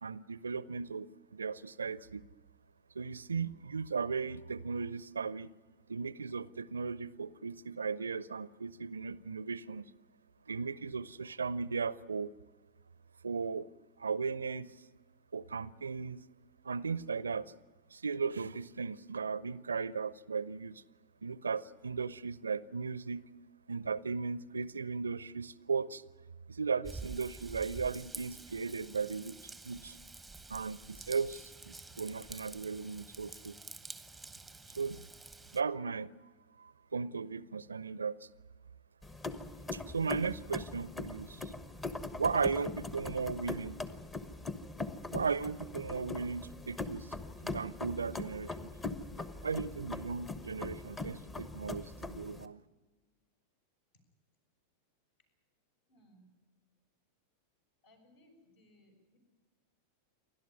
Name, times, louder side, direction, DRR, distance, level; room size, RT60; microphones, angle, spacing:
voice 1, 0.0-2.2 2.9-5.5 5.9-9.9 10.5-12.3 13.2-13.7 14.0-14.7 15.3-16.2 16.6-17.5 17.9-20.8 21.2-23.2 23.7-26.0 26.5-29.4 29.6-30.0 30.5-33.6 34.8-35.0 35.5-36.1 36.6-38.3 39.7-41.5 42.2-43.8 45.1-47.1 47.4-48.7 49.4-52.6, right 5 dB, 75° right, 20 dB, 0.6 m, -36 dB
Raindrop / Vehicle horn car horn honking / Trickle dribble, 26.8-35.6, right 3 dB, 5° right, 1.0 m, -49 dB
sound 1, 39.0-52.5, left 3 dB, 15° left, 1.2 m, -41 dB
voice 2, 55.9-56.3 57.8-59.2, equal, 55° left, 4 dB, 6.1 m, -64 dB
29.0 x 12.0 x 9.6 m, 1.3 s
figure-of-eight pair, 90°, 0 cm